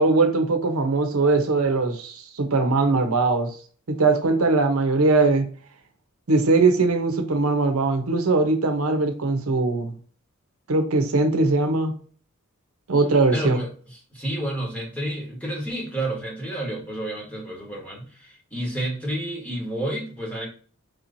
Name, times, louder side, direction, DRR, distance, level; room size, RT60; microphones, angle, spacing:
voice 1, 0.0-3.5 3.9-5.5 6.3-9.9 10.7-11.9 12.9-13.6, right 3 dB, 75° right, 5 dB, 0.7 m, -21 dB
voice 2, 13.3-20.5, right 1 dB, 5° left, -3 dB, 1.3 m, -30 dB
4.8 x 3.0 x 2.6 m, 0.42 s
head